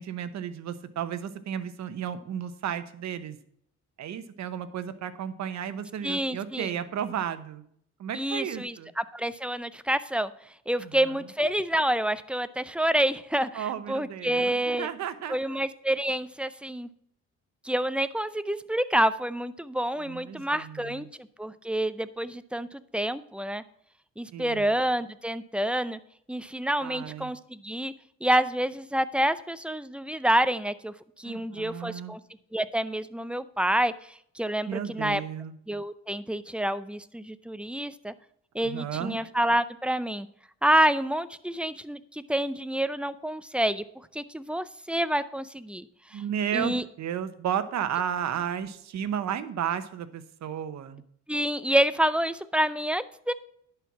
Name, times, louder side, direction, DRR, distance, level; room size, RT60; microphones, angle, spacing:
voice 1, 0.0-3.4 4.0-7.6 8.0-8.9 10.8-11.2 13.5-15.6 20.0-21.0 24.3-24.7 26.8-27.4 31.2-32.1 34.7-35.5 38.6-39.2 46.1-51.0, right 9 dB, 65° right, 12 dB, 1.0 m, -33 dB
voice 2, 6.0-6.7 8.1-10.3 10.7-14.9 15.3-16.9 17.6-23.6 24.2-26.0 26.3-27.9 28.2-32.2 32.5-35.2 35.7-38.1 38.5-40.3 40.6-43.8 44.1-46.2 46.5-46.8 51.3-53.3, right 1 dB, 5° right, 14 dB, 0.5 m, -28 dB
11.0 x 4.6 x 7.3 m, 0.67 s
cardioid pair, 90°, 30 cm